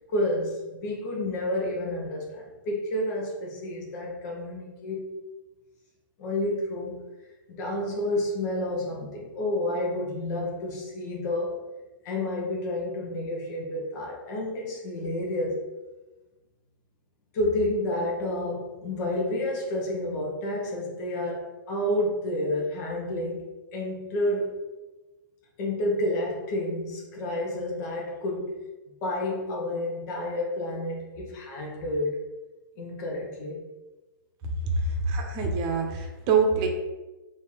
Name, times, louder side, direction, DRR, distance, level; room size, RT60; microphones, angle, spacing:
voice 1, 0.0-5.0 6.2-7.0 7.5-11.5 12.0-15.6 17.3-24.6 25.6-28.5 29.0-32.2 32.8-33.6, left 1 dB, 45° left, -2 dB, 1.1 m, -30 dB
voice 2, 34.7-36.7, right 4 dB, 35° right, 3 dB, 0.9 m, -25 dB
3.4 x 2.9 x 4.6 m, 1.1 s
hypercardioid pair, 135°, 12 cm